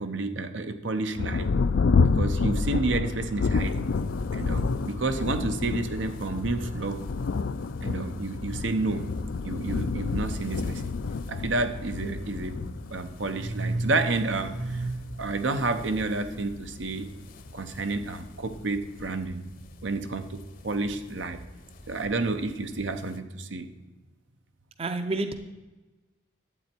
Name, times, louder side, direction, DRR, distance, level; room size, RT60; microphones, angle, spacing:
voice 1, 0.0-1.5 2.0-3.9 4.3-7.0 7.8-9.1 9.4-10.9 11.3-12.5 12.9-17.1 17.5-19.5 19.8-21.4 21.9-23.7, right 3 dB, 80° right, 8 dB, 0.9 m, -30 dB
Thunder, 1.2-17.2 18.0-18.1 18.6-19.1, left 4 dB, 70° left, 0.4 m, -29 dB
sound 1, 3.5-23.2, left 1 dB, 45° left, 0.8 m, -47 dB
voice 2, 24.8-25.3, right 2 dB, 30° right, 8 dB, 0.6 m, -28 dB
11.5 x 8.3 x 4.5 m, 1.2 s
head